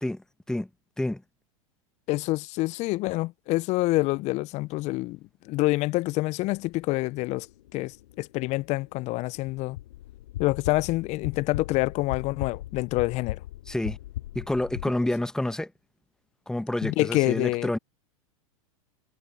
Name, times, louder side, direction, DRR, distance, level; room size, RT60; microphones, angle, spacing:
voice 1, 0.0-0.7 1.0-1.2 13.7-14.0 14.3-15.7 16.5-17.8, left 1 dB, 5° left, 1.2 m, -28 dB
voice 2, 2.1-5.2 5.4-7.5 7.7-9.8 10.4-13.4 16.8-17.7, left 20 dB, 40° left, 0.6 m, -27 dB
sound 1, 6.6-14.9, left 14 dB, 65° left, 4.0 m, -39 dB
hypercardioid pair, 100°, 18 cm